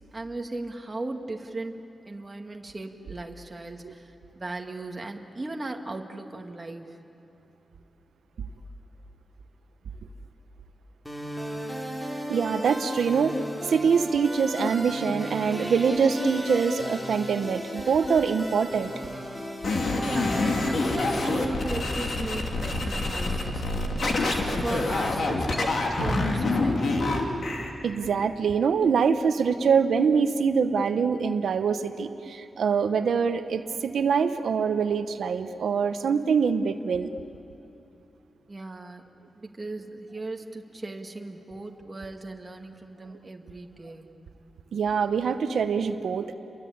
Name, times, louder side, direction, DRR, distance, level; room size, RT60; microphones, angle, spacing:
voice 1, 0.1-7.0 20.0-27.2 38.5-39.0 39.4-44.1, right 2 dB, 25° right, 2 dB, 1.9 m, -37 dB
sound 1, 11.0-21.3, equal, 10° left, 3.5 m, -35 dB
voice 2, 12.3-13.4 13.6-18.9 27.8-37.2 44.7-46.3, right 6 dB, 90° right, 8 dB, 0.9 m, -24 dB
sound 2, 19.6-27.7, left 2 dB, 60° left, 2.9 m, -26 dB
29.5 x 23.0 x 8.7 m, 2.7 s
wide cardioid pair, 130°, 0 cm